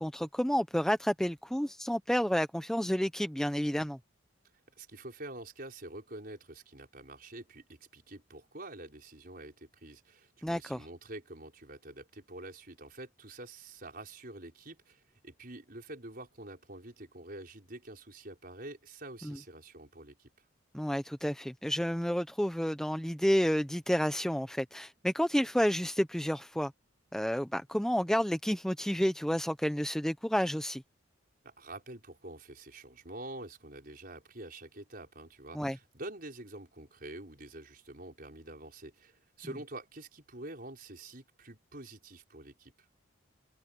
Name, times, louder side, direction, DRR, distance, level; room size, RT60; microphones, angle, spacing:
voice 1, 0.0-4.0 10.4-10.8 19.2-19.4 20.7-26.7 27.1-30.8 35.5-35.8, equal, 5° left, 0.6 m, -30 dB
voice 2, 4.8-20.3 31.4-42.7, right 2 dB, 45° right, 5.4 m, -47 dB
head